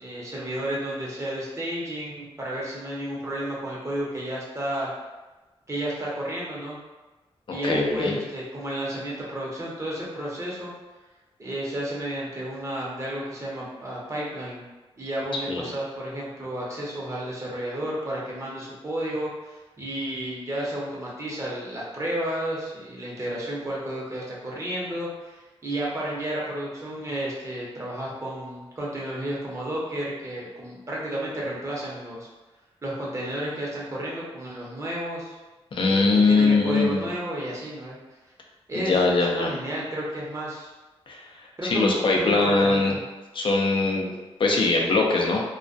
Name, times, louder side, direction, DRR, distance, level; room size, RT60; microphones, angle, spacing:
voice 1, 0.0-4.9 5.7-6.8 7.5-10.7 11.4-14.6 15.0-32.3 32.8-35.4 35.9-38.0 38.7-40.7 41.6-41.9 42.2-43.0, right 1 dB, 30° right, -5 dB, 0.8 m, -32 dB
voice 2, 7.5-8.2 15.5-15.7 35.7-37.0 38.7-39.5 41.1-41.2 41.6-43.0 43.3-44.1 44.4-45.4, left 3 dB, 55° left, 0 dB, 0.5 m, -22 dB
2.2 x 2.1 x 2.5 m, 1.2 s
cardioid pair, 85°, 11 cm